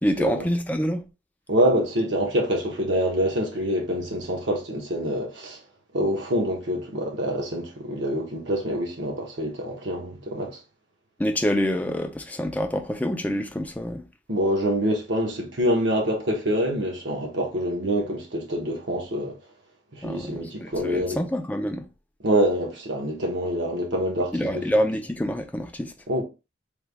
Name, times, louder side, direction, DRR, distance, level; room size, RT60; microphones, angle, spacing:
voice 1, 0.0-1.1 11.2-14.0 20.0-21.9 24.3-25.9, equal, 10° left, 0.3 m, -26 dB
voice 2, 1.5-5.6 5.9-10.6 14.3-19.4 19.9-21.2 22.2-24.8 26.1-26.2, equal, 65° right, 1.0 m, -26 dB
3.4 x 2.2 x 3.3 m
head